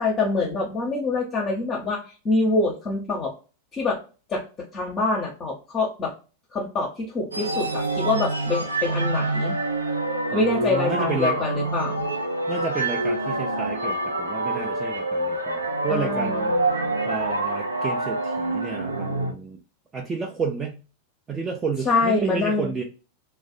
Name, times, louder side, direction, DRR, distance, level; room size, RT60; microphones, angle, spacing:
voice 1, 0.0-3.3 3.7-4.0 4.3-4.4 4.7-6.1 6.5-9.6 10.3-12.1 15.9-16.9 21.8-22.7, left 3 dB, 25° left, -2 dB, 0.7 m, -25 dB
sound 1, 7.3-19.3, right 2 dB, 80° right, 0.4 m, -26 dB
voice 2, 10.3-11.4 12.5-16.6 17.0-19.6 19.9-20.8 21.3-22.8, right 5 dB, 20° right, 0 dB, 0.4 m, -31 dB
2.4 x 2.1 x 2.5 m, 0.34 s
figure-of-eight pair, 90°, 0 cm